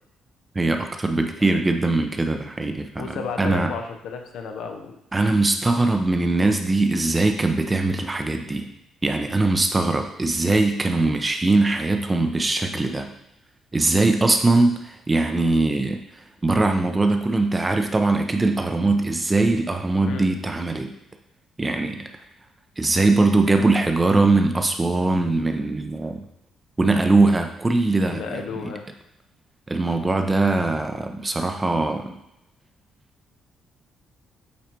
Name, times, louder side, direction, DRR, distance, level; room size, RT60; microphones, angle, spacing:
voice 1, 0.5-3.7 5.1-8.7 9.0-13.1 13.7-16.0 16.4-20.9 21.6-22.1 22.8-26.2 26.8-28.7 29.7-32.2, right 2 dB, 20° right, 5 dB, 0.7 m, -21 dB
voice 2, 3.0-5.0 20.1-20.3 28.1-28.9, left 5 dB, 80° left, 4 dB, 0.8 m, -33 dB
8.3 x 2.8 x 4.5 m, 0.83 s
cardioid pair, 90°, 0 cm